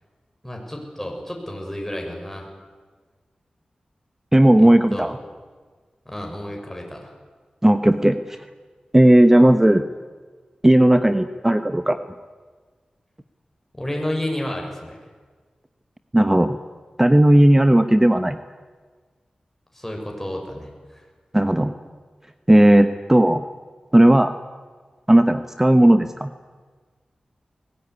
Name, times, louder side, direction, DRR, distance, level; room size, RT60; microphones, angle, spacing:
voice 1, 0.4-2.5 4.6-5.1 6.1-7.1 13.7-15.0 19.7-21.1, left 1 dB, 10° left, 1 dB, 7.2 m, -31 dB
voice 2, 4.3-5.1 7.6-8.4 8.9-9.8 10.6-12.0 16.1-16.6 17.0-18.4 21.3-21.7 22.5-23.4 23.9-24.3 25.1-26.3, right 1 dB, 15° right, 10 dB, 1.1 m, -15 dB
21.0 x 19.5 x 9.9 m, 1.5 s
cardioid pair, 60°, 2 cm